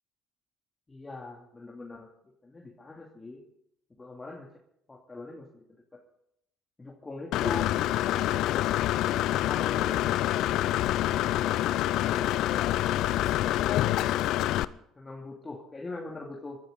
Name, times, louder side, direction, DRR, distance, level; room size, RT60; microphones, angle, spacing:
voice 1, 0.9-2.1 2.4-3.4 4.0-4.5 4.9-5.6 5.9-6.0 6.8-8.3 9.3-10.1 13.2-13.8 15.0-16.6, left 3 dB, 20° left, -1 dB, 2.7 m, -42 dB
Engine / Mechanisms, 7.3-14.6, left 14 dB, 65° left, 0.5 m, -26 dB
23.0 x 12.5 x 3.9 m, 0.77 s
hypercardioid pair, 65°, 0 cm